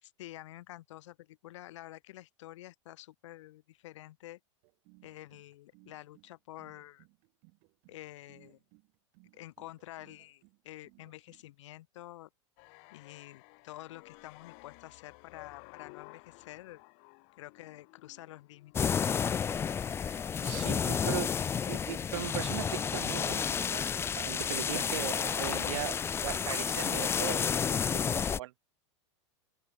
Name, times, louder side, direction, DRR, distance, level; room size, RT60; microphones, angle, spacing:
voice 1, 0.0-4.4 5.0-7.1 7.9-8.6 9.3-12.3 12.9-16.8 17.4-19.1 20.4-20.9 25.3-26.0, left 15 dB, 70° left, 4.1 m, -49 dB
sound 1, 4.6-11.5, right 36 dB, 55° right, 5.0 m, -63 dB
sound 2, 12.6-22.0, left 40 dB or more, 55° left, 7.6 m, -55 dB
sound 3, 18.7-28.4, left 7 dB, 15° left, 0.3 m, -31 dB
voice 2, 19.9-21.3 21.7-23.9 24.2-25.9 26.2-28.5, right 16 dB, 70° right, 1.4 m, -39 dB
open air
hypercardioid pair, 110°, 16 cm